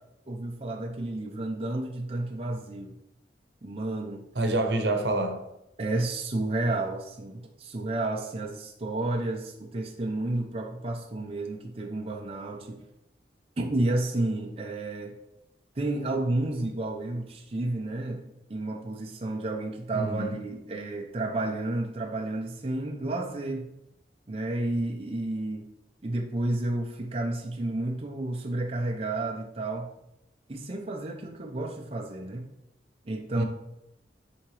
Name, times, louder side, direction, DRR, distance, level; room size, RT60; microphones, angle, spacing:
voice 1, 0.3-2.9 3.6-4.2 5.8-12.8 13.6-15.1 15.8-23.7 24.3-25.7 26.0-29.9 30.5-32.5 33.1-33.4, right 2 dB, 35° right, 1 dB, 0.5 m, -31 dB
voice 2, 4.3-5.4 19.9-20.3 33.4-33.5, right 2 dB, 80° right, 5 dB, 0.8 m, -27 dB
8.4 x 3.6 x 3.2 m, 0.85 s
head